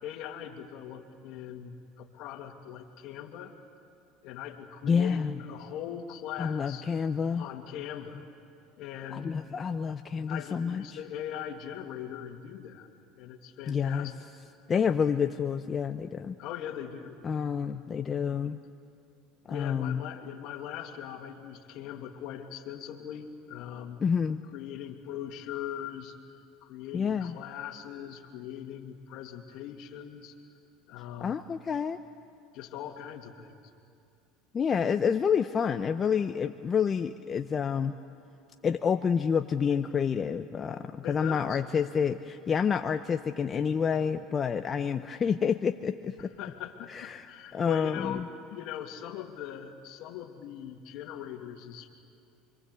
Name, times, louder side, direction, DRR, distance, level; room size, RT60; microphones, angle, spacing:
voice 1, 0.0-3.5 4.2-6.8 7.4-8.2 8.8-9.3 10.3-12.9 13.1-14.1 16.4-17.2 19.5-24.0 24.5-26.1 26.6-30.3 30.9-31.4 32.5-33.6 41.0-41.6 46.2-48.2 48.5-51.9, left 10 dB, 65° left, 5 dB, 2.5 m, -40 dB
voice 2, 4.8-5.3 6.4-7.5 9.1-10.8 13.7-14.1 14.7-16.4 17.2-18.6 19.5-20.0 24.0-24.4 26.9-27.4 31.2-32.0 34.5-38.0 38.6-46.3 46.9-48.2, left 6 dB, 30° left, 8 dB, 0.8 m, -28 dB
27.5 x 24.5 x 8.2 m, 2.5 s
supercardioid pair, 100°, 0 cm